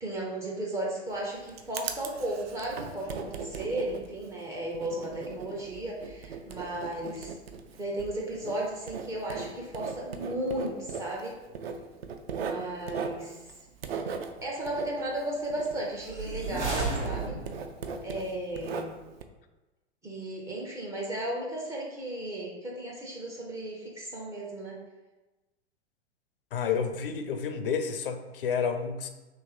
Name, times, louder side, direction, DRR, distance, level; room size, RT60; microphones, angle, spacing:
voice 1, 0.0-7.3 7.8-11.4 12.4-13.4 14.4-17.4 18.0-19.0 20.0-24.8, right 1 dB, 10° right, -4 dB, 0.4 m, -35 dB
Writing, 1.1-16.4 16.7-19.2, right 5 dB, 60° right, 0.5 m, -39 dB
sound 1, 16.0-17.8, right 3 dB, 85° right, 1.3 m, -33 dB
voice 2, 26.5-29.1, left 6 dB, 55° left, 7 dB, 0.5 m, -30 dB
3.0 x 3.0 x 4.6 m, 1.1 s
figure-of-eight pair, 100°, 34 cm